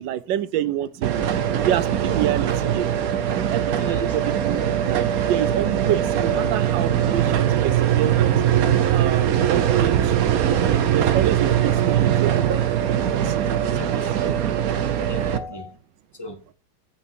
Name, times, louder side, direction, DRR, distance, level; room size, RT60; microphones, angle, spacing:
voice 1, 0.0-2.9 3.3-8.3 8.6-10.5 10.9-12.7 13.0-13.8 14.8-14.9, right 11 dB, 90° right, 1.4 m, -28 dB
sound 1, 1.0-15.4, right 10 dB, 60° right, 1.2 m, -21 dB
voice 2, 3.8-4.2 13.7-14.4 15.1-15.7 16.1-16.4, left 2 dB, 15° left, 1.3 m, -37 dB
8.6 x 7.3 x 4.6 m
omnidirectional pair, 1.9 m